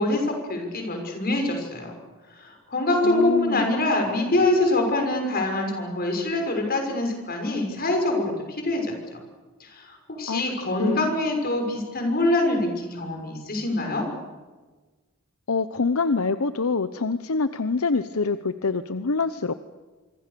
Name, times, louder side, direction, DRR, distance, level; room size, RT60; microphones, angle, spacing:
voice 1, 0.0-1.9 2.3-9.2 9.6-14.1, left 2 dB, 45° left, 3 dB, 6.5 m, -25 dB
voice 2, 3.0-3.7 10.3-10.4 10.8-11.1 15.5-19.5, left 4 dB, 75° left, 12 dB, 0.9 m, -25 dB
27.0 x 24.5 x 6.9 m, 1.3 s
head